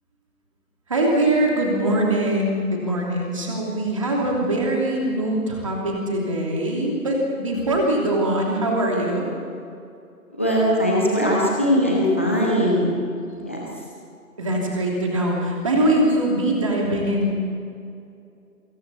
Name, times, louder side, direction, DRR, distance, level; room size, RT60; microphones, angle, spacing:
voice 1, 0.9-9.3 14.4-17.4, right 1 dB, 20° right, -1 dB, 3.0 m, -22 dB
voice 2, 10.4-12.9 13.4-13.6, equal, 10° left, -4 dB, 1.4 m, -20 dB
28.0 x 25.0 x 4.2 m, 2.5 s
figure-of-eight pair, 165°, 46 cm